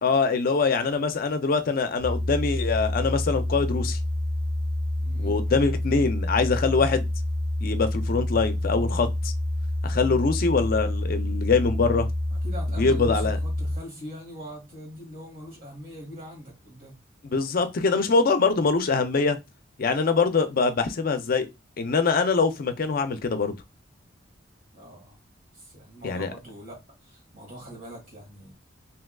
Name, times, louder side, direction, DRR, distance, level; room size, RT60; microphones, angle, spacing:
voice 1, 0.0-4.0 5.2-7.1 7.6-9.3 9.8-12.1 12.8-13.4 17.2-19.4 19.8-21.5 21.8-23.6 26.0-26.3, left 4 dB, 50° left, 0.4 m, -23 dB
sound 1, 2.0-13.8, left 1 dB, 75° right, 1.4 m, -28 dB
voice 2, 5.0-5.4 12.3-16.9 24.7-25.2 25.5-28.5, equal, 50° right, 1.7 m, -42 dB
3.5 x 2.7 x 2.2 m
head